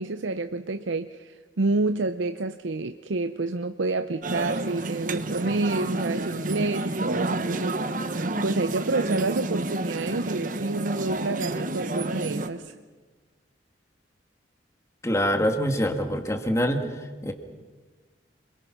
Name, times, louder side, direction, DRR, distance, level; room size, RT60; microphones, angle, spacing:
voice 1, 0.0-7.8 8.4-12.7, right 3 dB, 80° right, 9 dB, 0.7 m, -28 dB
sound 1, 4.2-12.5, right 2 dB, 45° right, 1.2 m, -30 dB
voice 2, 15.0-16.8 17.2-17.3, equal, 15° left, 5 dB, 2.0 m, -24 dB
28.5 x 22.0 x 6.1 m, 1.4 s
head